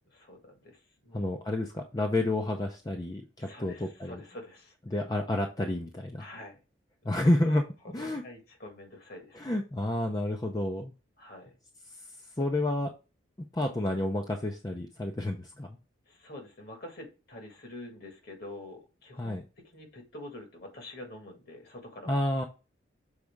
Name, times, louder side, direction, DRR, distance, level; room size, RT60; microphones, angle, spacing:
voice 1, 0.1-1.4 3.4-4.8 6.2-6.6 7.0-7.2 8.0-9.5 11.2-11.5 16.1-19.4 19.7-22.1, left 1 dB, 55° left, 1.8 m, -46 dB
voice 2, 1.1-4.2 4.9-6.3 7.0-7.6 7.9-8.2 9.3-10.9 11.9-12.0 12.4-12.9 13.4-15.8 19.2-19.4 22.1-22.4, left 1 dB, 20° left, 0.6 m, -30 dB
6.4 x 4.1 x 3.5 m
head